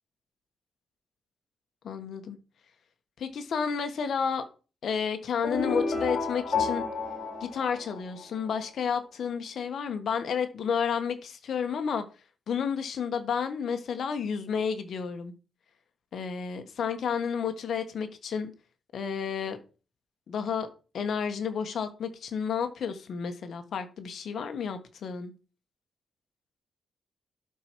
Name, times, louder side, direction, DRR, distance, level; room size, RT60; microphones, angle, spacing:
voice 1, 1.8-2.4 3.2-4.4 4.8-6.8 7.4-12.0 12.5-15.3 16.1-18.5 18.9-19.6 20.3-20.7 20.9-25.3, left 6 dB, 50° left, 1.2 m, -31 dB
sound 1, 5.4-8.5, left 4 dB, 35° left, 2.6 m, -30 dB
11.5 x 4.7 x 4.6 m
cardioid pair, 160°, 0 cm